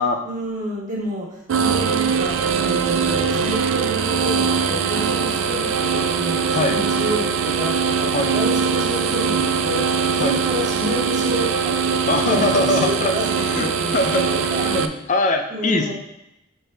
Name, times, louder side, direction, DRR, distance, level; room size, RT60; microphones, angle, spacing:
voice 1, 0.2-12.0 12.3-14.7 15.5-15.9, equal, 40° right, -3 dB, 1.2 m, -29 dB
sound 1, 1.5-14.9, right 6 dB, 85° right, 0.4 m, -21 dB
voice 2, 12.1-14.2 14.5-15.9, left 2 dB, 40° left, 5 dB, 0.5 m, -22 dB
6.3 x 4.5 x 3.3 m, 0.87 s
head